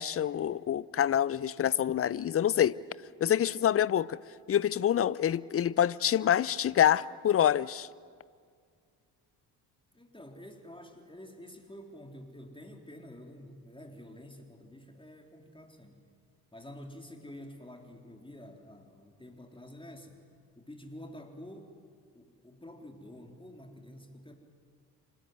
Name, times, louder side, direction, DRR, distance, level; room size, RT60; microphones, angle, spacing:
voice 1, 0.0-2.7 3.2-4.2 4.5-7.9, left 10 dB, 30° left, 21 dB, 0.6 m, -26 dB
voice 2, 9.9-16.0 16.5-20.2 20.6-21.7 22.1-24.3, left 1 dB, 10° left, 3 dB, 3.6 m, -49 dB
25.5 x 19.5 x 9.3 m, 2.1 s
figure-of-eight pair, 45°, 49 cm